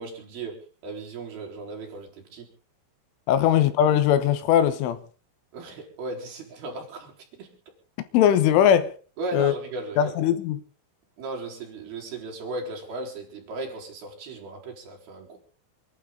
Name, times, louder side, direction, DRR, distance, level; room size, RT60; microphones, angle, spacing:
voice 1, 0.0-2.5 3.4-3.5 5.5-7.6 9.2-10.2 11.2-15.4, right 2 dB, 55° right, 5.8 m, -36 dB
voice 2, 3.3-5.0 8.1-8.9 9.3-9.5 10.0-10.6, left 10 dB, 85° left, 3.8 m, -20 dB
28.0 x 12.0 x 3.9 m
omnidirectional pair, 5.5 m